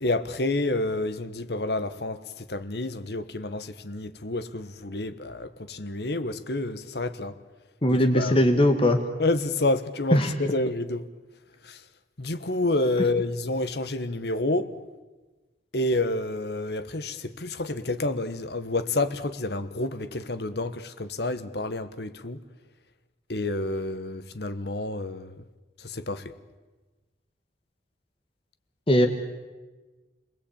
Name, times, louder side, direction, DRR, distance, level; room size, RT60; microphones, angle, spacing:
voice 1, 0.0-7.3 7.9-8.4 9.2-11.0 11.6-11.8 12.2-14.7 15.7-22.4 23.3-25.4 25.8-26.3, left 2 dB, 65° left, 1.4 m, -29 dB
voice 2, 7.8-9.0 10.1-10.3 28.9-29.1, left 1 dB, 30° left, 1.7 m, -20 dB
30.0 x 21.0 x 8.7 m
head